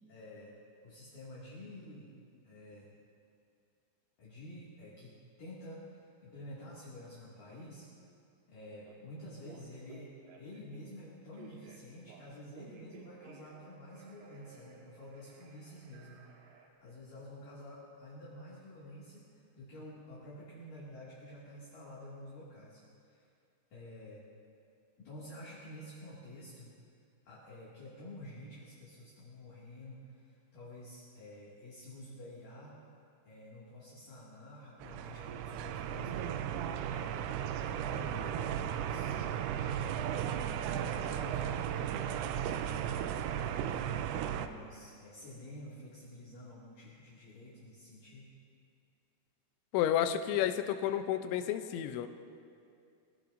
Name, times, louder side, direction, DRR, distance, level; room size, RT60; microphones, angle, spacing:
voice 1, 0.1-0.5 0.8-2.1 2.4-2.9 4.2-7.9 8.5-10.1 10.4-16.2 16.8-23.3 23.7-24.3 25.0-26.7 27.3-32.8 33.3-37.3 37.7-39.1 39.7-41.7 42.3-42.7 43.5-48.3, left 1 dB, 50° left, -8 dB, 3.5 m, -50 dB
Telephone, 8.9-9.0 9.4-10.8 11.3-13.6 13.9-16.7, right 5 dB, 65° right, 3.2 m, -56 dB
sound 1, 34.8-44.5, right 9 dB, 90° right, 3.2 m, -35 dB
voice 2, 49.7-52.1, left 10 dB, 80° left, 8 dB, 2.8 m, -31 dB
25.0 x 17.0 x 2.7 m, 2.4 s
omnidirectional pair, 5.8 m